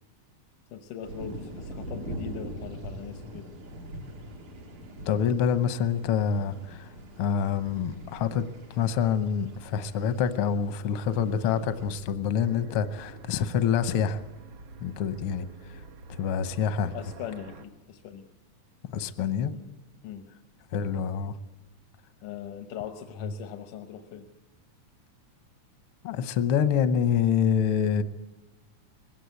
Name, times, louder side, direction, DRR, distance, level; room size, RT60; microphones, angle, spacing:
voice 1, 0.7-3.5 16.9-18.2 19.5-19.7 20.0-20.2 22.2-24.3, left 9 dB, 90° left, 7 dB, 2.5 m, -40 dB
sound 1, 1.0-12.1, right 1 dB, 90° right, 4.1 m, -42 dB
voice 2, 5.1-6.9 7.2-8.5 8.8-14.2 14.8-15.5 16.2-16.9 18.9-19.5 20.7-21.3 23.2-23.3 26.0-28.0, left 7 dB, 70° left, 11 dB, 1.3 m, -26 dB
sound 2, 12.4-17.7, right 3 dB, 65° right, 1.6 m, -47 dB
21.0 x 17.0 x 8.1 m, 1.1 s
omnidirectional pair, 3.5 m